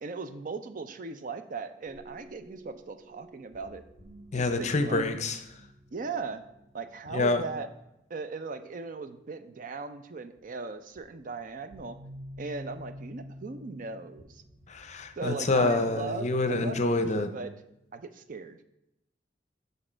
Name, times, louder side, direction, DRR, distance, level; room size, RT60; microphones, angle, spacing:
voice 1, 0.0-3.8 4.3-5.0 5.9-6.4 6.7-7.7 8.1-12.0 12.4-14.4 15.2-17.5 17.9-18.6, right 4 dB, 45° right, 10 dB, 0.5 m, -38 dB
sound 1, 1.8-8.7 10.4-10.5 11.0-18.0, equal, 85° right, 1.9 m, -50 dB
voice 2, 4.3-5.4 7.1-7.4 14.7-17.3, left 2 dB, 40° left, 9 dB, 0.6 m, -27 dB
6.3 x 5.3 x 4.4 m, 0.84 s
head